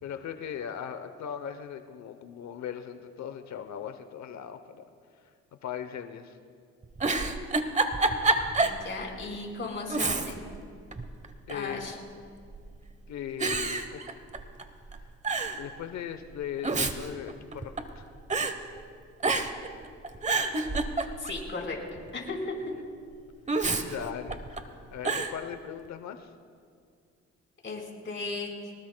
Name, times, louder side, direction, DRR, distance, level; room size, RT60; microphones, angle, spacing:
voice 1, 0.0-4.8 5.6-6.4 11.5-11.9 13.1-14.0 15.6-18.1 23.8-24.6 24.9-26.3, left 9 dB, 65° left, 9 dB, 0.8 m, -38 dB
Giggle, 6.8-8.8 9.2-9.3 9.9-10.6 10.9-11.7 12.5-12.9 13.4-14.6 14.9-15.0 15.2-15.6 16.4-18.0 18.3-18.6 19.2-19.7 20.0-21.4 23.5-24.6 25.0-25.4, right 3 dB, 25° right, 1.0 m, -28 dB
voice 2, 8.6-10.4 11.5-12.0 21.2-22.5 27.6-28.5, left 3 dB, 40° left, -1 dB, 4.3 m, -36 dB
23.5 x 19.0 x 2.2 m, 2.2 s
cardioid pair, 90°, 30 cm